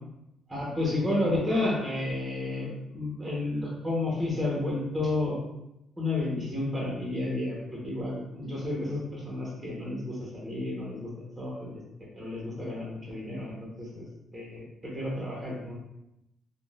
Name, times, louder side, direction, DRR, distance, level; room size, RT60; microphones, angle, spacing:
voice 1, 0.5-5.4 6.0-11.1 11.4-11.8 12.1-14.1 14.3-15.7, left 2 dB, 10° right, -4 dB, 1.1 m, -31 dB
3.7 x 2.4 x 2.4 m, 0.86 s
cardioid pair, 90°, 0 cm